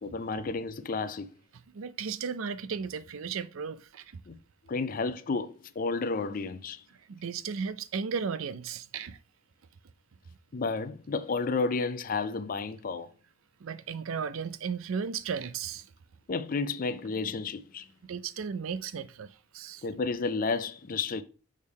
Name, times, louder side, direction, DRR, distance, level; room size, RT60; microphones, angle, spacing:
voice 1, 0.0-1.3 4.3-4.4 4.7-6.8 10.5-13.1 16.3-17.9 19.8-21.2, left 4 dB, 40° left, 0.4 m, -31 dB
voice 2, 1.7-4.1 7.1-9.2 13.6-15.9 18.1-19.8, right 6 dB, 75° right, 0.5 m, -35 dB
6.5 x 3.6 x 5.2 m
head